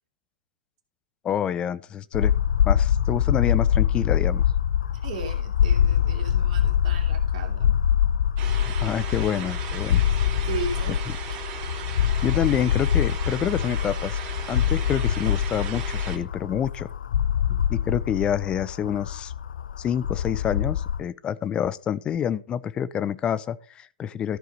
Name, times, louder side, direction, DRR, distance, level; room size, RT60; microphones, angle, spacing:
voice 1, 1.2-2.3 2.7-4.4 8.8-10.0 12.2-14.2 14.5-16.9 17.9-19.3 19.8-24.4, left 9 dB, 20° left, 0.5 m, -27 dB
sound 1, 2.1-21.0, left 9 dB, 70° left, 0.4 m, -24 dB
voice 2, 4.9-7.8 10.4-11.0, right 4 dB, 50° right, 2.7 m, -36 dB
sound 2, 8.4-16.2, right 7 dB, 35° right, 2.9 m, -37 dB
14.0 x 4.8 x 5.3 m
hypercardioid pair, 120°, 5 cm